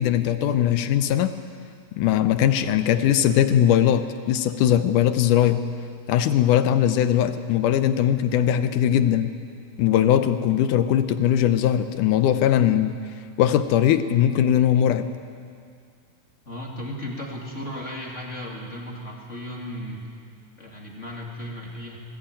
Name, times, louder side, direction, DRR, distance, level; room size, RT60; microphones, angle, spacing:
voice 1, 0.0-1.3 2.0-5.6 6.1-9.3 9.8-13.0 13.4-15.1, left 10 dB, 75° left, 10 dB, 2.0 m, -20 dB
voice 2, 16.5-20.1 20.6-22.0, equal, 25° left, -2 dB, 2.0 m, -35 dB
20.0 x 16.5 x 8.9 m, 2.2 s
omnidirectional pair, 4.2 m